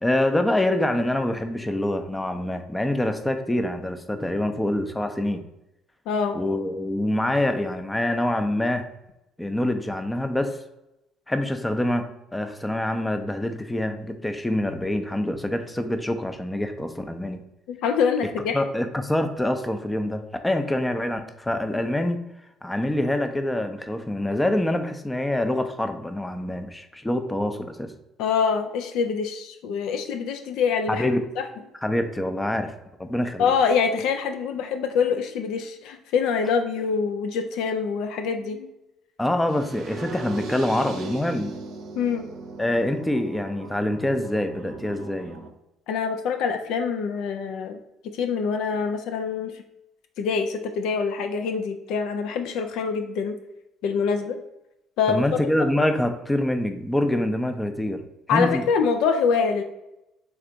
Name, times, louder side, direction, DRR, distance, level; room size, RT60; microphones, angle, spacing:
voice 1, 0.0-5.4 6.3-8.9 9.4-10.6 11.3-17.4 18.5-22.2 22.6-27.9 30.9-31.2 31.8-32.7 33.0-33.5 39.2-41.5 42.6-45.4 55.1-58.6, left 1 dB, 10° left, 8 dB, 0.5 m, -25 dB
voice 2, 6.1-6.4 17.7-18.6 28.2-31.1 31.4-31.5 33.4-38.7 42.0-42.3 45.9-49.6 50.2-53.4 53.8-54.4 55.0-55.2 55.6-55.7 58.3-59.6, left 6 dB, 65° left, 6 dB, 0.3 m, -25 dB
sound 1, 39.5-45.5, right 3 dB, 60° right, 0.6 m, -38 dB
3.5 x 3.2 x 3.8 m, 0.89 s
hypercardioid pair, 55°, 0 cm